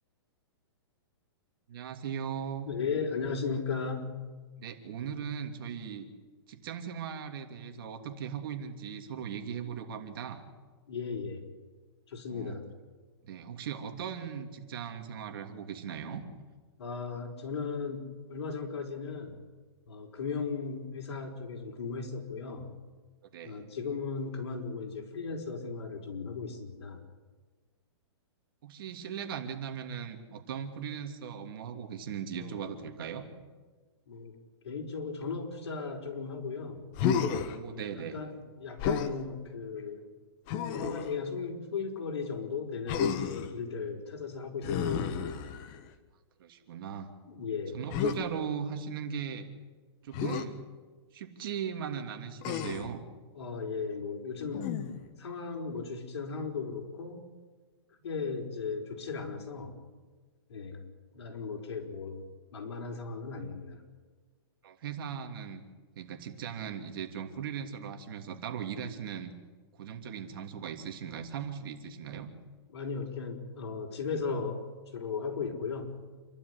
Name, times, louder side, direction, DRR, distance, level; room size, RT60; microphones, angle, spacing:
voice 1, 1.7-2.7 4.6-6.1 6.5-10.4 12.3-12.6 13.2-16.2 23.3-23.6 28.6-33.3 37.4-38.2 46.4-47.1 47.7-49.4 50.0-50.6 51.1-53.0 64.6-65.6 66.0-69.3 69.8-72.3, right 8 dB, 55° right, 6 dB, 2.9 m, -38 dB
voice 2, 2.7-4.2 10.9-11.4 12.1-12.7 16.8-19.4 19.9-22.7 23.4-27.0 32.4-32.9 34.1-34.3 34.6-36.8 37.7-40.1 40.7-45.1 47.3-47.8 53.3-54.8 55.2-57.2 58.0-59.8 60.5-60.8 61.1-62.2 62.5-63.8 72.7-75.9, left 5 dB, 70° left, 1 dB, 4.8 m, -36 dB
Human voice, 36.9-37.6 38.8-39.1 40.5-41.1 42.9-43.5 44.6-45.9 47.9-48.2 50.1-50.5 52.4-52.9 54.5-55.1, left 7 dB, 30° left, 1.5 m, -31 dB
28.0 x 12.5 x 9.8 m, 1.4 s
hypercardioid pair, 155°, 14 cm